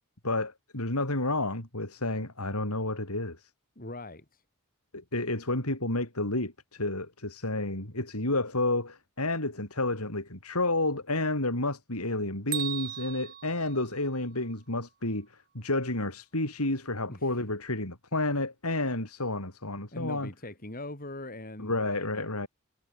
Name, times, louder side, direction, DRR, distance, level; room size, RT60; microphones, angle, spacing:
voice 1, 0.2-3.5 4.9-20.3 21.6-22.5, left 2 dB, 90° left, 7.2 m, -30 dB
voice 2, 3.8-4.4 17.1-17.3 19.9-22.5, left 1 dB, 40° left, 6.1 m, -41 dB
Bell, 12.5-14.5, right 11 dB, 45° right, 2.2 m, -38 dB
head